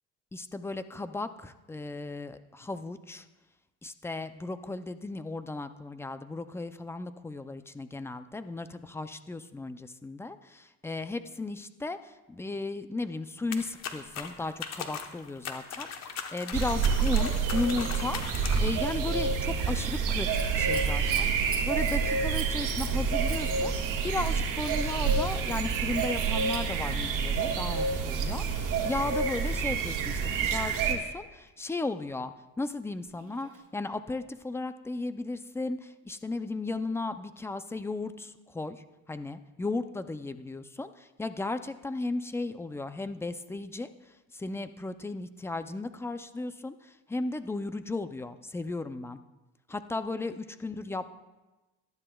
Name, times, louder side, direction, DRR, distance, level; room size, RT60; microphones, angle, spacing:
voice 1, 0.3-3.3 3.8-43.9 44.3-49.2 49.7-51.1, left 3 dB, 10° left, 11 dB, 0.4 m, -35 dB
sound 1, 13.5-18.8, left 7 dB, 55° left, 1.1 m, -39 dB
sound 2, 16.5-30.9, right 5 dB, 75° right, 1.9 m, -28 dB
Scissors, 19.8-31.1 33.1-33.7 34.4-34.5, right 7 dB, 45° right, 1.4 m, -46 dB
18.5 x 12.0 x 2.3 m, 1.1 s
cardioid pair, 125°, 31 cm